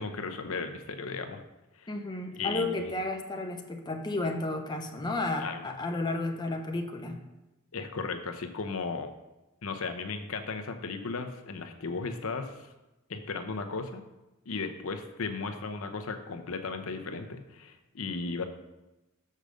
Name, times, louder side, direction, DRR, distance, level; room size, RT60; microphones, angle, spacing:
voice 1, 0.0-1.4 1.8-1.9 2.3-2.9 5.4-5.6 7.7-9.1 9.6-12.7 13.1-14.0 14.5-18.4, left 4 dB, 65° left, 7 dB, 0.7 m, -35 dB
voice 2, 1.9-7.2, left 2 dB, 20° left, 4 dB, 0.7 m, -32 dB
6.5 x 5.0 x 6.5 m, 1.0 s
head